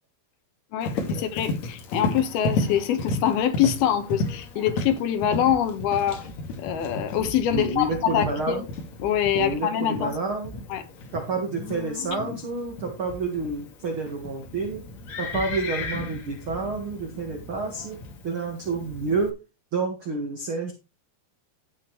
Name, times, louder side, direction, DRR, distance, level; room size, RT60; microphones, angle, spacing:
voice 1, 0.7-6.2 6.6-8.7 9.0-10.2 10.7-10.8, left 9 dB, 75° left, 3.2 m, -24 dB
Livestock farm animals working animals, 0.8-19.3, left 2 dB, 50° left, 2.9 m, -34 dB
voice 2, 7.5-8.6 9.3-10.6 11.1-14.8 15.2-18.0 18.2-19.3 19.7-20.7, right 3 dB, 45° right, 1.9 m, -29 dB
12.5 x 8.7 x 3.2 m
omnidirectional pair, 4.5 m